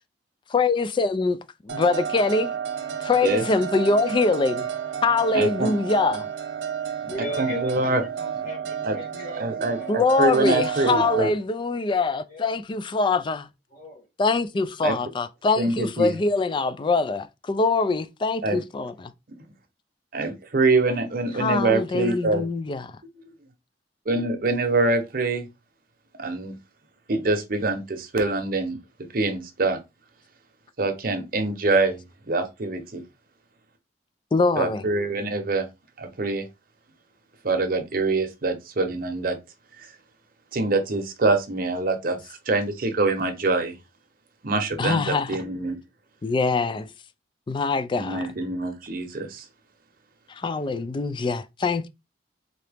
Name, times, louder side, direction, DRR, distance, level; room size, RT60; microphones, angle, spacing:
voice 1, 0.5-1.4 1.6-2.5 3.0-4.7 5.0-6.3 9.9-13.5 14.2-19.1 21.4-22.9 34.3-34.8 44.8-45.4 46.2-46.9 47.5-48.2 50.3-51.9, left 3 dB, 25° left, 0.3 m, -23 dB
sound 1, 1.7-11.3, right 8 dB, 85° right, 0.9 m, -31 dB
voice 2, 5.3-5.7 7.4-8.0 8.8-9.0 9.4-11.3 14.8-14.9 15.6-16.1 18.4-18.6 20.1-22.4 24.1-25.5 26.2-26.6 27.1-28.8 29.1-29.8 30.8-33.0 34.6-35.7 36.0-36.5 37.4-39.4 39.8-39.9 40.5-43.8 44.4-45.8 47.9-49.5, right 3 dB, 55° right, 0.8 m, -25 dB
voice 3, 7.0-10.3 12.3-12.5 13.7-14.0, left 1 dB, 50° left, 1.2 m, -38 dB
3.9 x 2.8 x 3.4 m
head